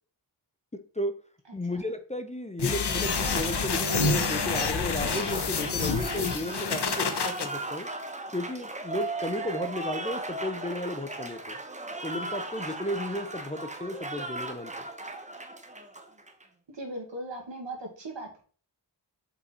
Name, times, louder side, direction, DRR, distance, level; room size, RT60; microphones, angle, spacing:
voice 1, 1.5-7.9 8.3-11.6 12.0-14.7, left 1 dB, 15° left, 9 dB, 0.6 m, -34 dB
sound 1, 2.6-7.5, left 4 dB, 65° left, 0.8 m, -28 dB
Applause, 2.8-16.4, right 2 dB, 15° right, 0.8 m, -37 dB
voice 2, 16.7-18.4, right 1 dB, 75° right, 2 dB, 1.8 m, -38 dB
5.5 x 4.1 x 4.2 m, 0.42 s
wide cardioid pair, 50°, 44 cm